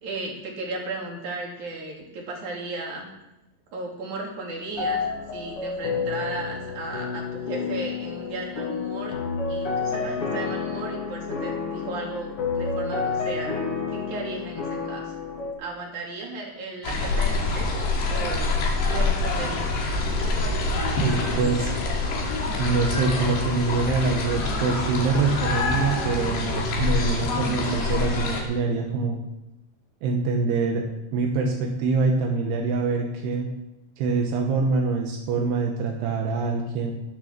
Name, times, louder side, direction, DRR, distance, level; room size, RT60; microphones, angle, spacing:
voice 1, 0.0-3.1 3.7-5.1 5.3-9.2 9.5-13.6 13.9-15.1 15.6-18.4 18.9-19.7, right 2 dB, 50° right, -1 dB, 4.3 m, -35 dB
sound 1, 4.7-15.5, left 5 dB, 40° left, 2.8 m, -30 dB
sound 2, 16.8-28.4, left 2 dB, 85° left, 4.6 m, -26 dB
voice 2, 21.0-21.7 22.6-29.2 30.0-30.8 31.1-33.5 34.0-36.9, right 4 dB, 80° right, 1 dB, 3.3 m, -25 dB
20.0 x 6.8 x 6.7 m, 0.93 s
omnidirectional pair, 4.7 m